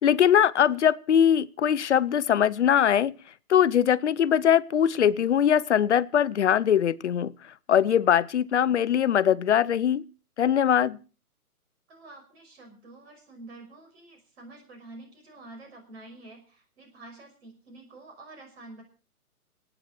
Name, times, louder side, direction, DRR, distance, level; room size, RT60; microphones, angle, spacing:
voice 1, 0.0-3.1 3.5-7.3 7.7-10.0 10.4-11.0, left 9 dB, 50° left, 0.7 m, -21 dB
voice 2, 11.9-18.8, right 2 dB, 45° right, 5.7 m, -48 dB
27.0 x 9.1 x 4.4 m
hypercardioid pair, 155°, 45 cm